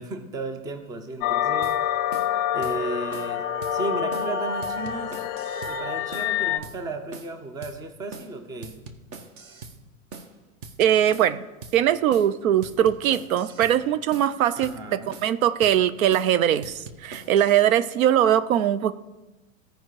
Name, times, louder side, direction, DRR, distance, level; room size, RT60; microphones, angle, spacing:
voice 1, 0.0-2.0 2.5-3.4 3.7-5.2 5.7-8.8 14.6-15.2, right 2 dB, 10° right, 7 dB, 0.5 m, -34 dB
sound 1, 1.2-6.6, left 9 dB, 35° left, 0.6 m, -27 dB
sound 2, 1.6-1.8 2.1-2.3 2.6-2.8 3.1-3.3 3.6-3.8 4.1-4.3 4.6-5.8 6.1-6.3 6.6-6.8 7.1-7.4 7.6-7.8 8.1-8.3 8.6-9.8 10.1-10.3 10.6-10.8 11.1-11.4 11.6-11.8 12.1-12.3 12.6-13.8 14.1-14.3 14.6-14.8 15.1-15.4 15.6-15.8 16.1-16.3 16.6-17.6, right 4 dB, 35° right, 0.9 m, -42 dB
voice 2, 10.8-11.4 11.7-18.9, right 10 dB, 75° right, 15 dB, 0.6 m, -21 dB
13.5 x 5.0 x 4.7 m, 1.1 s
hypercardioid pair, 125°, 42 cm